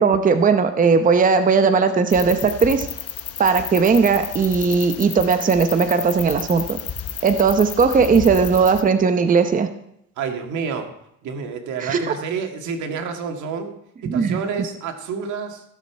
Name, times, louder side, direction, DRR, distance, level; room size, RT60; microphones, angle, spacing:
voice 1, 0.0-2.9 3.4-6.8 7.2-9.7 11.8-12.1 14.0-14.4, right 5 dB, 25° right, 8 dB, 0.8 m, -18 dB
sound 1, 2.1-8.8, left 8 dB, 50° left, 1.1 m, -32 dB
voice 2, 10.2-10.9 11.2-13.7 14.0-15.6, right 6 dB, 75° right, 4 dB, 2.0 m, -29 dB
16.0 x 6.8 x 4.7 m, 0.75 s
cardioid pair, 100°, 30 cm